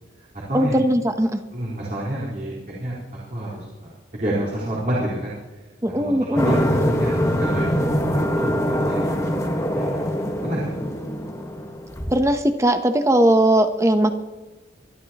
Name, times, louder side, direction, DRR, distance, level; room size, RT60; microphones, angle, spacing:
voice 1, 0.5-1.4 5.8-6.5 12.1-14.1, right 1 dB, 15° right, 8 dB, 0.8 m, -19 dB
voice 2, 1.5-3.0 3.3-5.4 6.0-9.3 9.7-9.8 10.4-10.7, right 1 dB, 45° right, -8 dB, 4.2 m, -28 dB
sound 1, 6.4-12.2, equal, 15° left, 1.4 m, -23 dB
24.0 x 12.0 x 2.9 m, 1.2 s
head